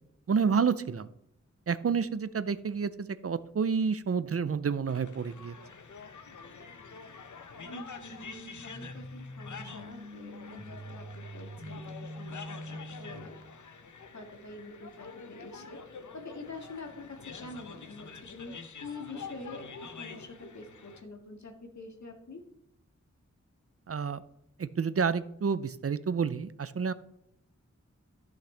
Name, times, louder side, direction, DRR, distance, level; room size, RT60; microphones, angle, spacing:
voice 1, 0.3-1.1 1.7-5.5 23.9-24.2 24.6-26.9, right 6 dB, 55° right, 14 dB, 0.5 m, -29 dB
sound 1, 4.8-21.0, left 5 dB, 85° left, 0.9 m, -47 dB
sound 2, 7.6-13.5, equal, 25° right, 4.2 m, -45 dB
voice 2, 7.7-13.4 14.1-15.8 16.1-18.5 18.8-22.4, left 2 dB, 70° left, 3 dB, 1.9 m, -46 dB
14.0 x 6.5 x 3.3 m, 0.77 s
wide cardioid pair, 60°, 29 cm